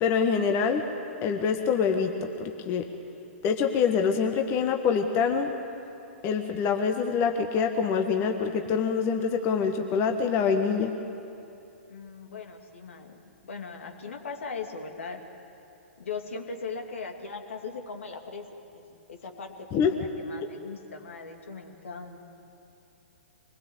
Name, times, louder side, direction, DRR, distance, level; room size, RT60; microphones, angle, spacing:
voice 1, 0.0-0.8 1.2-2.1 2.4-2.9 3.4-5.5 6.2-10.9 19.7-19.9, left 6 dB, 35° left, 5 dB, 1.4 m, -25 dB
voice 2, 11.9-15.2 16.0-18.5 18.7-22.2, left 4 dB, 70° left, 4 dB, 2.4 m, -39 dB
24.5 x 20.5 x 8.1 m, 2.8 s
figure-of-eight pair, 120°, 7 cm